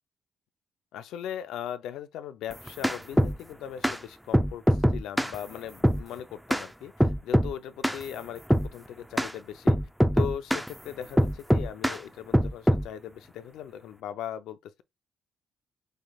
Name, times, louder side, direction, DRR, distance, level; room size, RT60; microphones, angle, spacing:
voice 1, 0.9-9.8 10.1-14.8, left 9 dB, 85° left, 0.5 m, -39 dB
sound 1, 2.5-3.4 3.8-4.0 4.3-5.3 5.8-6.0 6.5-6.7 7.0-7.5 7.8-8.0 8.5-8.7 9.2-9.3 9.7-10.7 11.2-12.0 12.3-12.9, equal, ahead, 0.5 m, -23 dB
6.3 x 3.3 x 2.3 m
cardioid pair, 90°, 0 cm